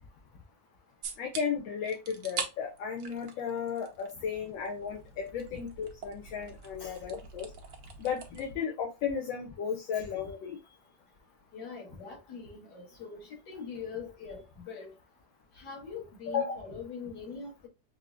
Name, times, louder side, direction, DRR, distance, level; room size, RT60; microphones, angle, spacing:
sound 1, 1.0-1.4 1.8-2.5 2.8-4.1 4.4-8.5, right 6 dB, 60° right, 0.9 m, -42 dB
voice 1, 1.2-7.5 8.0-10.6 16.3-16.6, left 7 dB, 75° left, 1.5 m, -34 dB
voice 2, 11.5-13.2 13.5-14.9 15.6-17.7, left 5 dB, 60° left, 2.0 m, -42 dB
5.7 x 2.8 x 2.4 m
omnidirectional pair, 2.1 m